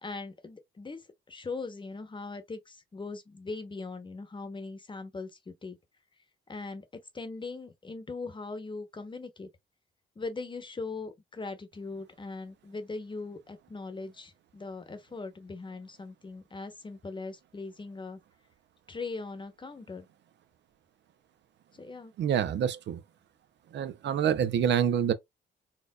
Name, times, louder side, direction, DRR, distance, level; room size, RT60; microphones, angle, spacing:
voice 1, 0.0-5.8 6.5-6.8 7.1-9.5 10.2-18.2 18.9-20.1 21.7-22.1, left 3 dB, 25° left, 0.9 m, -40 dB
voice 2, 22.2-23.0 23.7-25.1, right 8 dB, 65° right, 0.5 m, -26 dB
4.4 x 2.4 x 2.3 m
cardioid pair, 90°, 20 cm